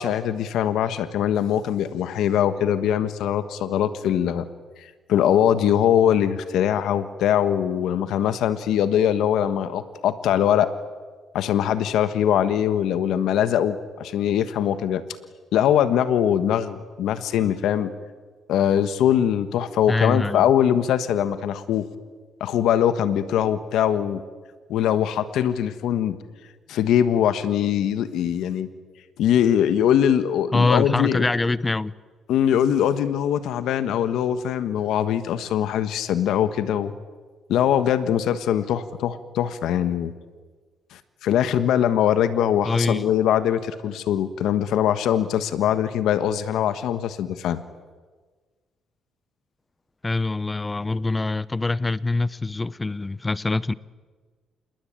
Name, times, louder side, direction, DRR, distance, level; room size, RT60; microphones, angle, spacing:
voice 1, 0.0-4.5 5.1-10.7 11.3-15.0 15.5-17.9 18.5-21.9 22.4-24.2 24.7-26.2 26.7-28.7 29.2-31.2 32.3-36.9 37.5-40.1 40.9-47.6, left 10 dB, 85° left, 1.4 m, -22 dB
voice 2, 19.9-20.5 30.5-31.9 42.6-43.1 50.0-53.7, left 3 dB, 20° left, 0.8 m, -24 dB
27.5 x 21.0 x 9.0 m
cardioid pair, 90°, 0 cm